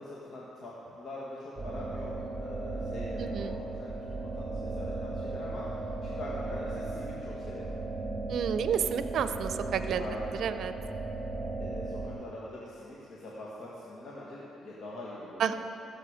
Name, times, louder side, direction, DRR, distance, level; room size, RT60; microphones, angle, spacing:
voice 1, 0.0-7.7 10.0-10.3 11.6-15.5, left 1 dB, 60° left, -6 dB, 1.8 m, -43 dB
sound 1, 1.6-12.1, right 2 dB, 5° right, 2.5 m, -36 dB
voice 2, 3.2-3.6 8.3-10.0 10.4-10.7 15.4-15.5, right 8 dB, 70° right, 11 dB, 0.6 m, -30 dB
16.5 x 7.3 x 5.0 m, 2.8 s
cardioid pair, 90°, 0 cm